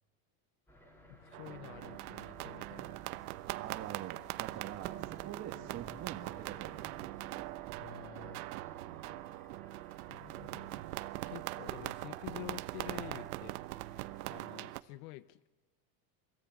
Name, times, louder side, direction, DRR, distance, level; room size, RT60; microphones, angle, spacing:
sound 1, 0.7-14.4, right 1 dB, 5° left, 4.0 m, -58 dB
voice 1, 1.1-3.2 7.8-8.5 10.1-10.9 11.2-13.9 14.3-15.4, left 18 dB, 75° left, 15 dB, 1.0 m, -49 dB
sound 2, 1.3-14.8, right 19 dB, 85° right, 1.1 m, -42 dB
voice 2, 3.5-6.9 8.9-9.2, right 11 dB, 35° right, 1 dB, 1.8 m, -45 dB
28.5 x 22.0 x 9.3 m, 1.2 s
cardioid pair, 170°, 43 cm